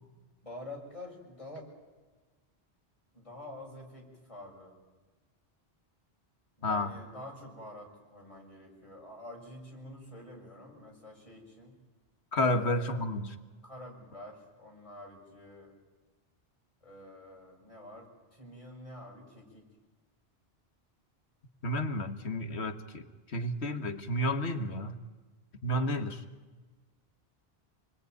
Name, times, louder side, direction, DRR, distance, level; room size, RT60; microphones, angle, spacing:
voice 1, 0.4-1.7 3.1-4.7 6.6-11.8 12.4-13.1 13.6-15.7 16.8-19.6 25.6-26.1, left 1 dB, 30° left, -2 dB, 6.8 m, -48 dB
voice 2, 6.6-7.0 12.3-13.3 21.6-23.1 23.3-25.0 25.6-26.2, left 1 dB, 85° left, 8 dB, 1.9 m, -31 dB
28.5 x 21.0 x 9.4 m, 1.3 s
omnidirectional pair, 1.1 m